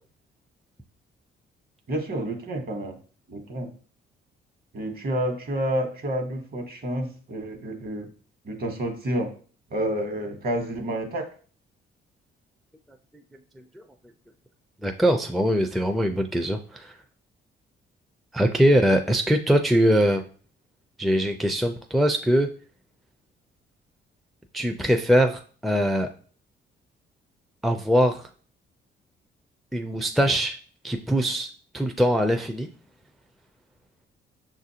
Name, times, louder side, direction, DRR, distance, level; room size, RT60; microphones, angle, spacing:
voice 1, 1.9-3.0 3.3-3.7 4.7-8.1 8.4-9.3 9.7-11.2, right 1 dB, 50° right, 4 dB, 1.2 m, -29 dB
voice 2, 14.8-16.9 18.3-20.2 21.0-22.5 24.5-26.1 27.6-28.2 29.7-30.6 30.8-32.7, equal, ahead, 5 dB, 0.4 m, -22 dB
5.8 x 2.5 x 2.8 m, 0.41 s
cardioid pair, 90°, 20 cm